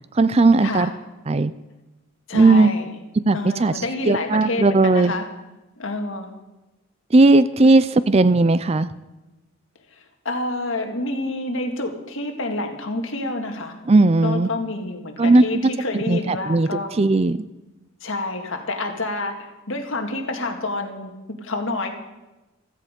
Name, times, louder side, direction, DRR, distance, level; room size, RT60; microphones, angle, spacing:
voice 1, 0.1-0.9 1.3-1.5 2.3-2.7 3.2-5.1 7.1-8.9 13.9-14.5 15.2-15.4 16.1-17.4, right 3 dB, 30° right, 15 dB, 0.4 m, -17 dB
voice 2, 2.3-2.9 3.3-5.3 5.8-6.3 9.9-13.8 14.2-16.9 18.0-21.1 21.4-21.9, left 2 dB, 60° left, 4 dB, 1.9 m, -28 dB
15.5 x 13.5 x 5.2 m, 1.1 s
head